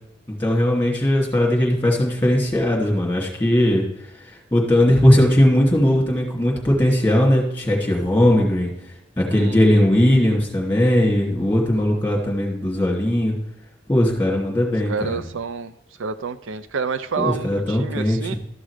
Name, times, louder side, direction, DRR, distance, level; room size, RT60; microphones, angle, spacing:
voice 1, 0.3-3.8 4.2-8.7 9.2-13.4 13.9-15.2 17.2-18.4, left 1 dB, 10° left, -2 dB, 2.6 m, -19 dB
voice 2, 9.3-9.9 14.9-15.7 16.0-18.3, right 5 dB, 75° right, 12 dB, 0.5 m, -28 dB
13.0 x 6.2 x 5.0 m, 0.76 s
head